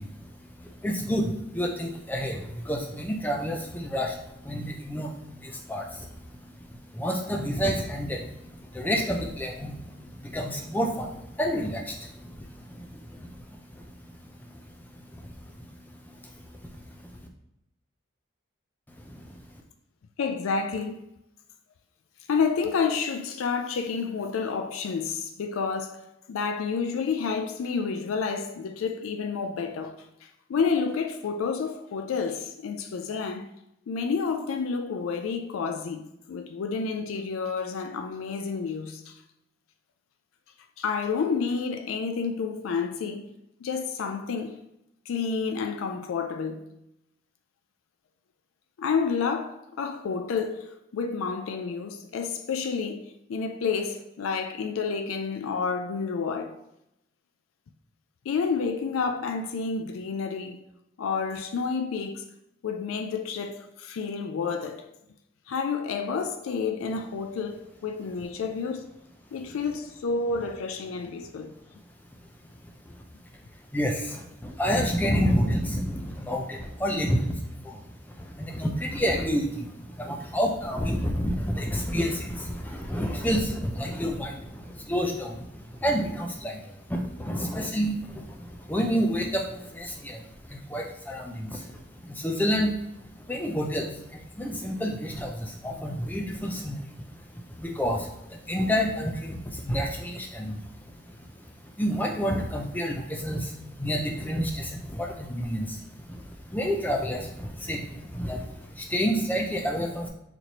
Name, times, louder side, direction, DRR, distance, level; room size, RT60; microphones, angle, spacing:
voice 1, 0.0-17.2 19.0-19.5 72.9-73.0 73.7-77.9 78.2-92.7 93.2-101.4 101.8-110.1, equal, 10° left, 0.4 m, -30 dB
voice 2, 20.2-21.1 22.3-33.5 33.9-39.2 40.8-43.3 43.6-44.6 45.1-46.6 48.8-56.6 58.3-60.6 61.0-62.3 62.6-64.9 65.5-68.9 69.3-71.5, left 5 dB, 90° left, 0.4 m, -30 dB
4.1 x 3.1 x 2.8 m
head